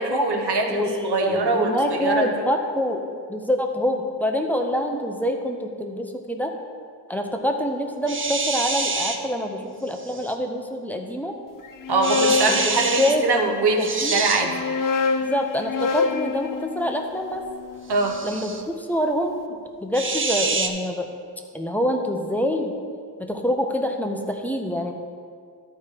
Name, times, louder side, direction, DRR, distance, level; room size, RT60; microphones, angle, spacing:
voice 1, 0.0-2.4 11.9-14.6 17.9-18.2, right 3 dB, 85° right, 3 dB, 1.1 m, -23 dB
voice 2, 0.7-6.5 7.1-11.4 12.5-13.5 13.8-14.2 15.3-17.4 18.2-21.0 21.5-22.7 23.2-24.9, equal, 5° left, 3 dB, 0.8 m, -26 dB
sound 1, 8.1-9.2 10.0-10.3 12.0-13.2 13.8-14.4 17.9-18.6 19.9-20.7, right 4 dB, 30° right, 0.6 m, -26 dB
sound 2, 11.6-13.5 14.3-18.5, left 5 dB, 55° left, 0.5 m, -27 dB
12.0 x 4.5 x 4.8 m, 2.1 s
wide cardioid pair, 90°, 39 cm